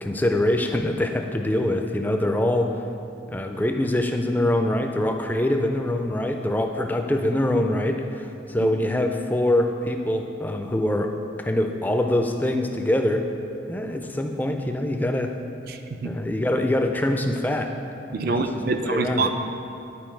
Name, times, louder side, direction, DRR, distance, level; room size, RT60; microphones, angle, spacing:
voice 1, 0.0-2.7 3.3-13.3 13.7-15.3 16.0-17.7 18.2-18.4 18.8-19.3, left 1 dB, 10° left, 4 dB, 0.3 m, -24 dB
voice 2, 15.7-16.1 18.1-19.5, right 3 dB, 50° right, 7 dB, 0.5 m, -26 dB
10.5 x 4.6 x 4.5 m, 2.8 s
head